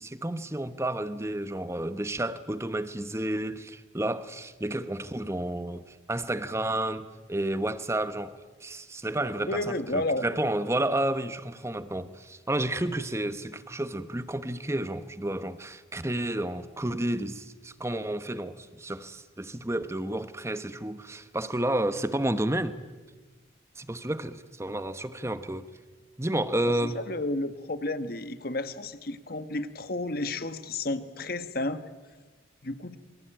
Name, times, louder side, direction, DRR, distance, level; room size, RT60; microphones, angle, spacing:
voice 1, 0.0-8.3 8.6-22.8 23.8-25.7 26.2-27.0, right 1 dB, 15° right, 1.1 m, -31 dB
voice 2, 9.4-10.3 26.8-31.8 32.6-33.0, left 2 dB, 50° left, 1.4 m, -31 dB
27.5 x 24.0 x 9.0 m
head